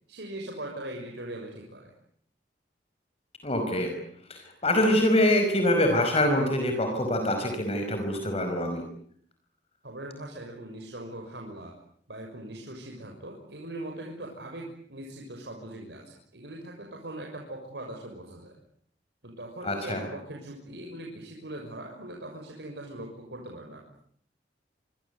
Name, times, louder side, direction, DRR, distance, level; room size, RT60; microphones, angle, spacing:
voice 1, 0.1-1.9 9.8-11.7 12.1-18.6 19.2-23.8, right 1 dB, 70° right, 0 dB, 6.5 m, -40 dB
voice 2, 3.4-3.9 4.3-8.8 19.6-20.0, left 1 dB, 35° left, 5 dB, 5.2 m, -25 dB
26.5 x 26.0 x 8.2 m, 0.63 s
head